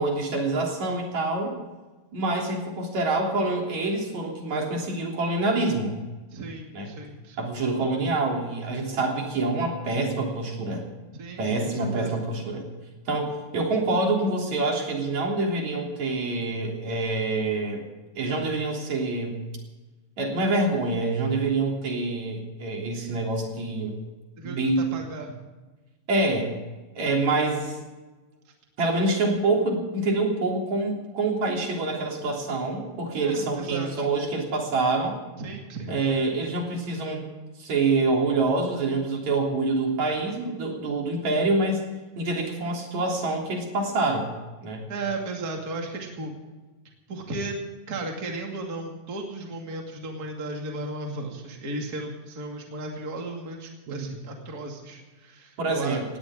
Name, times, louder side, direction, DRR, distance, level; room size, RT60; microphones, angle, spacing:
voice 1, 0.0-1.6 2.1-5.9 6.7-6.9 7.4-10.8 11.4-12.7 13.1-17.8 18.2-19.4 20.2-24.0 24.4-24.8 26.1-26.5 27.0-27.8 28.8-35.2 35.9-37.2 37.6-44.3 44.6-44.9 53.9-54.0 55.6-56.0, right 2 dB, 70° right, 0 dB, 4.7 m, -26 dB
voice 2, 6.3-7.4 11.1-12.2 24.4-25.4 33.2-34.0 35.4-35.9 44.9-46.3 47.1-47.6 47.9-56.0, right 2 dB, 35° right, 1 dB, 2.7 m, -35 dB
19.0 x 17.5 x 3.8 m, 1.2 s
omnidirectional pair, 3.3 m